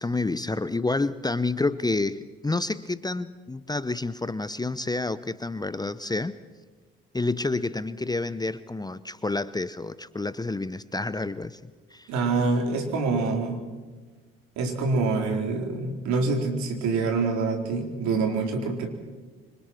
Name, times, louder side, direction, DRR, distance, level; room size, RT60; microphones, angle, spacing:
voice 1, 0.0-6.4 7.1-11.6 11.9-12.1, left 3 dB, 15° left, 15 dB, 0.9 m, -29 dB
voice 2, 12.1-13.6 14.6-18.9, right 3 dB, 65° right, 3 dB, 4.3 m, -26 dB
29.5 x 25.5 x 4.6 m, 1.4 s
hypercardioid pair, 55°, 31 cm